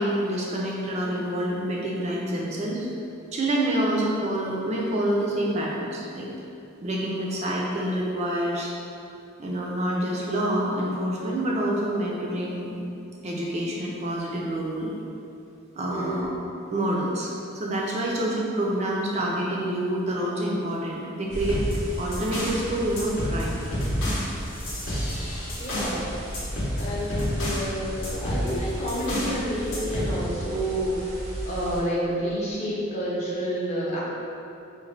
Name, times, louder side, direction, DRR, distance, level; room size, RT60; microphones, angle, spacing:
voice 1, 0.0-2.9 3.3-6.3 6.8-8.7 9.4-12.8 13.2-14.9 15.8-16.3 16.7-21.6 22.0-23.6, right 1 dB, 30° right, -3 dB, 0.3 m, -27 dB
voice 2, 15.9-16.3 25.6-26.1 26.8-34.0, equal, 35° left, -6 dB, 0.6 m, -29 dB
sound 1, 21.3-31.8, right 1 dB, 80° right, 0.7 m, -36 dB
sound 2, 21.4-22.6 23.0-26.0 26.3-27.7 28.0-29.4 29.7-30.1, equal, 75° left, 0.7 m, -29 dB
3.8 x 2.1 x 3.1 m, 2.7 s
head